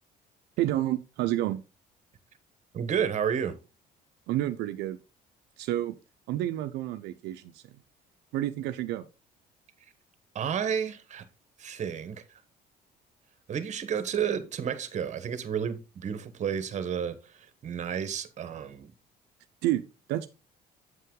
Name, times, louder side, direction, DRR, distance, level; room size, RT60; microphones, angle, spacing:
voice 1, 0.6-1.6 4.3-5.0 5.6-5.9 6.3-7.7 8.3-9.1 19.6-20.3, right 14 dB, 85° right, 0.5 m, -29 dB
voice 2, 2.7-3.6 10.3-11.2 11.6-12.2 13.5-17.2 17.6-18.9, right 8 dB, 45° right, 1.1 m, -31 dB
7.9 x 5.6 x 3.7 m
cardioid pair, 110°, 17 cm